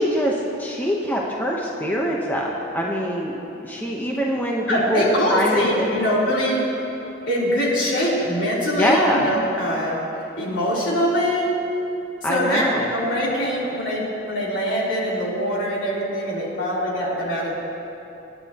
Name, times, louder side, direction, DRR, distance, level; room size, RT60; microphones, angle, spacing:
voice 1, 0.0-6.0 8.8-9.2 12.2-12.9, equal, 10° left, -3 dB, 0.9 m, -23 dB
voice 2, 4.7-6.6 7.3-10.0 10.4-11.5 12.2-12.7 12.9-17.6, equal, 75° left, -6 dB, 3.7 m, -23 dB
25.5 x 10.5 x 3.0 m, 3.0 s
head